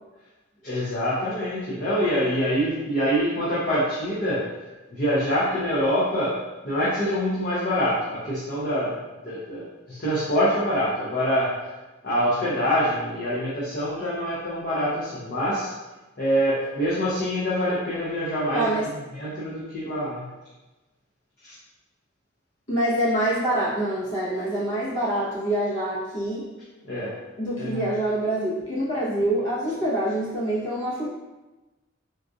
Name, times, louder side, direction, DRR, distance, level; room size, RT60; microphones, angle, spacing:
voice 1, 0.6-4.4 4.9-6.4 6.6-8.9 9.2-11.5 12.0-15.7 16.2-18.7 19.1-20.2 21.4-21.5 26.9-27.1 27.6-27.8, equal, 45° left, -9 dB, 0.7 m, -25 dB
voice 2, 18.5-18.9 22.7-26.4 27.4-31.1, right 1 dB, 60° left, -9 dB, 1.1 m, -25 dB
3.9 x 2.4 x 2.4 m, 1.1 s
head